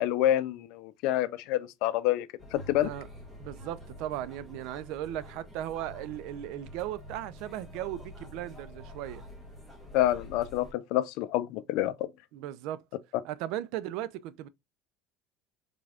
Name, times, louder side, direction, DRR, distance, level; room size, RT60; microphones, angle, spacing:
voice 1, 0.0-2.3 2.5-2.9 9.9-12.1, left 13 dB, 70° left, 0.4 m, -27 dB
sound 1, 2.4-10.7, left 1 dB, 5° right, 1.4 m, -47 dB
voice 2, 2.7-3.1 3.4-9.2 12.3-12.8 13.2-14.5, right 12 dB, 70° right, 0.4 m, -37 dB
3.7 x 3.3 x 2.3 m
cardioid pair, 135°, 0 cm